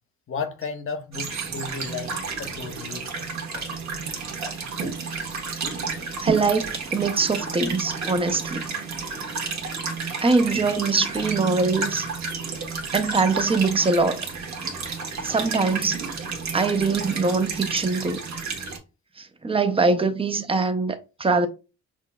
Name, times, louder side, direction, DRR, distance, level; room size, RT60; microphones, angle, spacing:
voice 1, 0.3-3.1, left 5 dB, 45° left, 0.8 m, -33 dB
sound 1, 1.1-18.8, right 4 dB, 65° right, 1.1 m, -31 dB
voice 2, 6.2-8.7 10.2-12.1 12.9-14.2 15.2-16.0 16.5-18.2 19.4-21.5, right 4 dB, 20° right, 0.5 m, -22 dB
5.9 x 2.1 x 2.2 m
cardioid pair, 90°, 30 cm